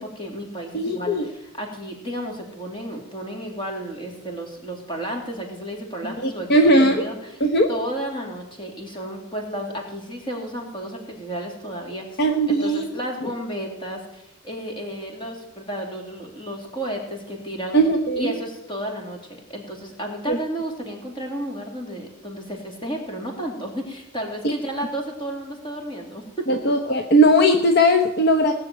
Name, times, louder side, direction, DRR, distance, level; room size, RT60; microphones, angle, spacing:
voice 1, 0.0-7.4 7.7-12.2 12.5-17.8 18.2-19.2 19.5-26.2, equal, 25° left, 1 dB, 2.9 m, -32 dB
voice 2, 0.7-1.3 6.2-7.0 7.4-7.7 12.2-12.9 17.7-18.3 20.3-20.4 24.4-24.5 26.5-28.5, equal, 50° left, 6 dB, 1.0 m, -18 dB
18.0 x 6.7 x 9.1 m, 0.90 s
head